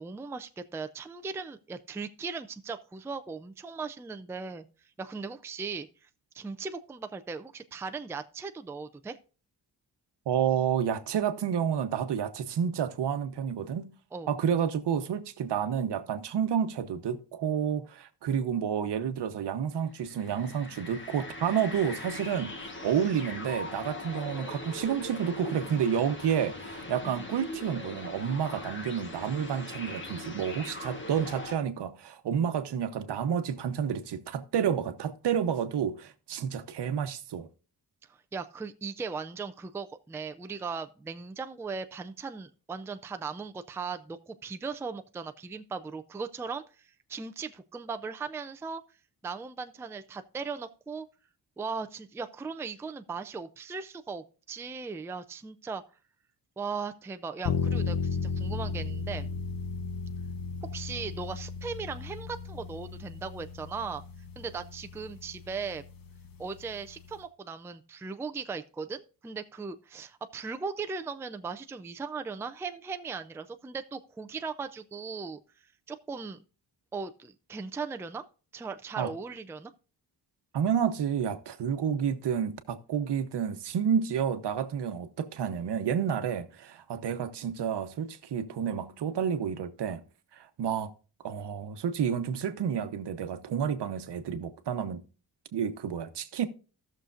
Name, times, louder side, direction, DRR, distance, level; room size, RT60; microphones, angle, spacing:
voice 1, 0.0-4.7 5.0-6.1 6.3-9.2 14.1-14.3 38.1-48.8 49.2-51.1 51.6-55.8 56.6-59.3 60.6-64.0 64.4-65.8 66.4-75.4 75.9-76.4 76.9-78.3 78.5-79.7, right 5 dB, 5° right, 0.3 m, -38 dB
voice 2, 10.3-13.9 14.3-22.5 22.8-37.5 79.0-79.1 80.5-90.0 90.3-90.9 91.2-95.0 95.5-96.5, right 8 dB, 75° right, 0.9 m, -30 dB
sound 1, 19.9-31.6, left 2 dB, 30° left, 1.4 m, -41 dB
sound 2, 57.4-67.2, left 5 dB, 55° left, 0.9 m, -35 dB
16.5 x 6.5 x 2.5 m
wide cardioid pair, 155°, 41 cm